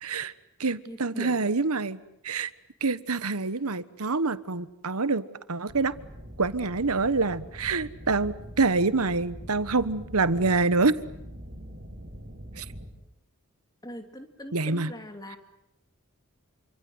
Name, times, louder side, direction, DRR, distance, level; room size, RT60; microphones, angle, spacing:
voice 1, 0.0-0.3 0.6-2.5 2.8-5.9 6.4-10.9 12.6-12.7 14.5-14.9 15.3-15.4, right 3 dB, 90° right, 15 dB, 1.3 m, -26 dB
voice 2, 0.9-1.4 13.8-15.4, equal, 15° left, 7 dB, 3.0 m, -41 dB
sound 1, 5.7-12.9, equal, 45° right, 4.8 m, -43 dB
28.0 x 26.0 x 8.0 m, 0.82 s
head